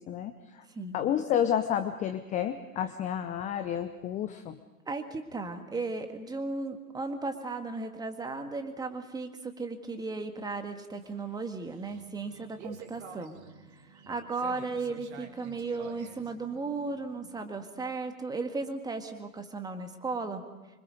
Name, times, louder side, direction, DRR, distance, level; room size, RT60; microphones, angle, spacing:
voice 1, 0.0-0.6 0.9-4.6, left 9 dB, 15° left, 10 dB, 0.7 m, -30 dB
voice 2, 0.7-1.0 4.9-13.4 13.7-20.5, right 3 dB, 10° right, 6 dB, 1.8 m, -36 dB
sound 1, 10.7-17.5, right 7 dB, 50° right, 2.6 m, -50 dB
26.0 x 24.5 x 5.3 m, 1.2 s
figure-of-eight pair, 110°, 44 cm